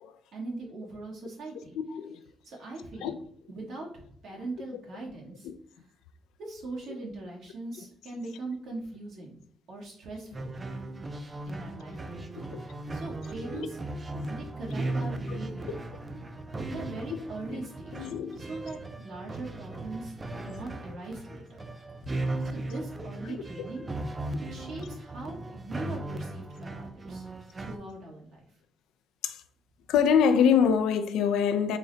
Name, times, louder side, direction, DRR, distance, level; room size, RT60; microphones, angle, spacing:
voice 1, 0.3-1.8 2.4-3.2 3.5-5.5 6.4-9.4 9.7-10.5 11.4-13.8 14.3-15.8 16.7-21.6 22.4-23.9 24.5-27.2 27.6-28.4, right 2 dB, 70° right, 1.2 m, -41 dB
voice 2, 1.9-2.2 3.0-3.1 12.5-12.6 13.5-13.7 14.1-14.3 15.3-15.4 17.1-17.2 17.5-17.6 17.9-18.4 23.3-23.4 24.3-24.4 29.2-29.4 29.9-31.8, left 7 dB, 90° left, 0.3 m, -25 dB
sound 1, 10.3-27.8, right 2 dB, 25° right, 0.5 m, -37 dB
3.8 x 2.1 x 3.8 m
cardioid pair, 90°, 0 cm